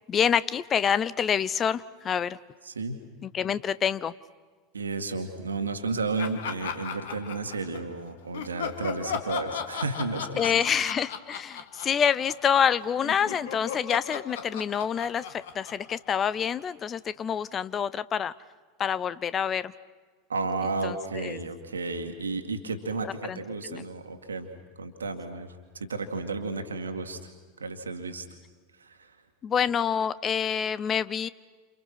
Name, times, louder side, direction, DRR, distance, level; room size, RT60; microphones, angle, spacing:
voice 1, 0.1-2.4 3.2-4.1 10.4-18.3 18.8-19.7 20.8-21.4 23.3-23.4 23.7-23.8 29.4-31.3, left 8 dB, 30° left, 17 dB, 0.7 m, -27 dB
voice 2, 2.6-3.0 4.7-10.4 20.3-24.5 24.8-25.5 25.7-27.3 27.6-28.3 28.8-29.1, right 3 dB, 75° right, 6 dB, 2.2 m, -32 dB
Laughter, 6.2-7.9 8.3-12.7 13.0-16.6, left 7 dB, 60° left, 2.0 m, -37 dB
29.5 x 28.0 x 6.2 m, 1.4 s
figure-of-eight pair, 80°, 0 cm